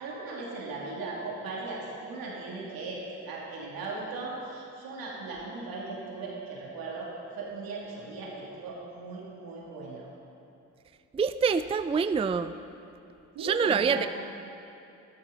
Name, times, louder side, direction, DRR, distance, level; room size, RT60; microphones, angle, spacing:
voice 1, 0.0-7.1 7.3-10.1 13.3-14.1, right 3 dB, 80° right, -4 dB, 2.7 m, -38 dB
voice 2, 11.1-12.5 13.4-14.1, right 6 dB, 15° right, 12 dB, 0.4 m, -26 dB
12.5 x 12.0 x 4.0 m, 2.8 s
supercardioid pair, 50°, 35 cm